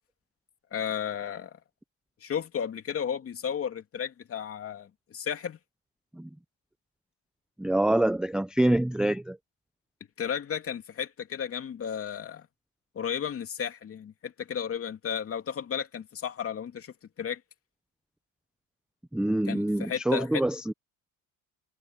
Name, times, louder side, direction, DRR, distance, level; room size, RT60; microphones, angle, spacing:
voice 1, 0.7-1.6 2.2-5.6 10.2-12.5 12.9-17.4 19.5-20.4, left 8 dB, 40° left, 2.8 m, -33 dB
voice 2, 7.6-9.4 19.1-20.7, right 1 dB, ahead, 0.5 m, -26 dB
cardioid pair, 120°, 36 cm